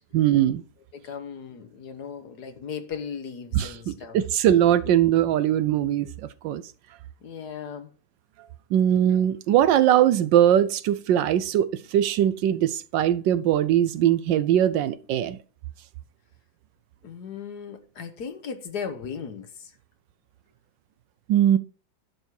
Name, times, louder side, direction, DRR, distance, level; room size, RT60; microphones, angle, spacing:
voice 1, 0.1-0.6 3.5-6.1 6.4-6.6 8.7-15.4 21.3-21.6, right 11 dB, 75° right, 1.2 m, -21 dB
voice 2, 0.9-4.2 7.2-7.9 17.0-19.7, left 6 dB, 60° left, 1.5 m, -37 dB
11.0 x 6.2 x 4.5 m
omnidirectional pair, 2.2 m